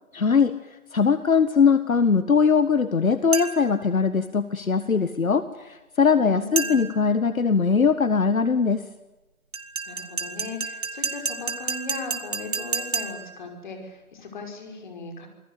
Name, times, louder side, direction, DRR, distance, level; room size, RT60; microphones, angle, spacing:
voice 1, 0.1-0.5 0.9-8.8, left 5 dB, 65° left, 12 dB, 1.7 m, -21 dB
sound 1, 3.3-3.8 6.6-7.1 9.5-13.4, right 4 dB, 65° right, 3.0 m, -30 dB
voice 2, 6.2-7.0 9.9-15.3, left 3 dB, 30° left, 4 dB, 5.6 m, -38 dB
27.0 x 20.0 x 8.3 m, 1.1 s
figure-of-eight pair, 165°, 44 cm